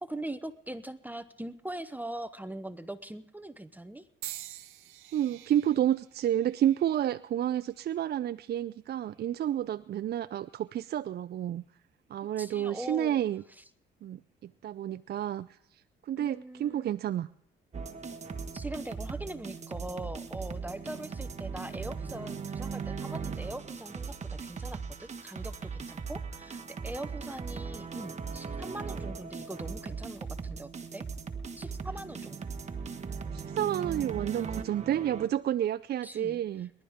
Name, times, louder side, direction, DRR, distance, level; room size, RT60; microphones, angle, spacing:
voice 1, 0.0-4.0 12.4-13.2 16.2-17.0 18.5-31.0 31.6-32.4 36.0-36.4, right 1 dB, 10° right, 11 dB, 0.8 m, -41 dB
sound 1, 4.2-8.3 9.1-9.5 10.4-10.6, right 13 dB, 90° right, 0.9 m, -47 dB
voice 2, 5.1-11.6 12.1-13.4 14.0-17.3 33.3-36.7, right 11 dB, 55° right, 13 dB, 0.5 m, -30 dB
sound 2, 17.7-35.3, right 5 dB, 35° right, 1.5 m, -38 dB
29.0 x 11.5 x 3.6 m, 0.75 s
cardioid pair, 90°, 20 cm